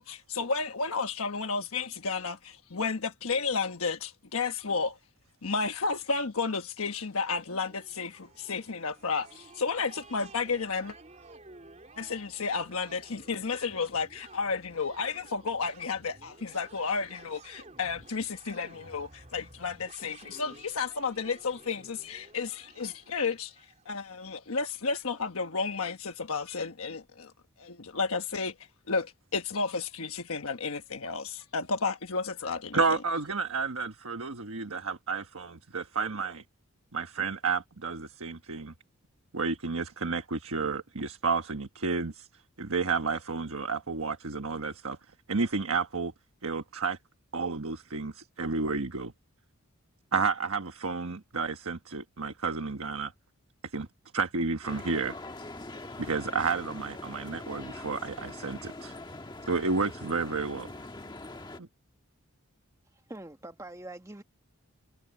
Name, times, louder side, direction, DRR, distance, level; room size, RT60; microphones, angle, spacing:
voice 1, 0.0-5.0 5.4-10.9 12.0-27.3 27.6-28.5 28.9-32.8, left 4 dB, 80° left, 1.2 m, -32 dB
sound 1, 7.0-24.1, right 3 dB, 35° right, 3.4 m, -54 dB
voice 2, 32.7-36.4 36.9-38.7 39.3-42.3 42.6-45.0 45.3-46.1 46.4-47.0 47.3-49.1 50.1-53.1 53.7-53.9 54.1-55.2 56.0-58.9 59.5-60.7, right 4 dB, 80° right, 1.3 m, -31 dB
sound 2, 54.6-61.6, left 2 dB, 20° left, 1.4 m, -43 dB
voice 3, 63.1-64.2, right 1 dB, 15° right, 1.4 m, -43 dB
head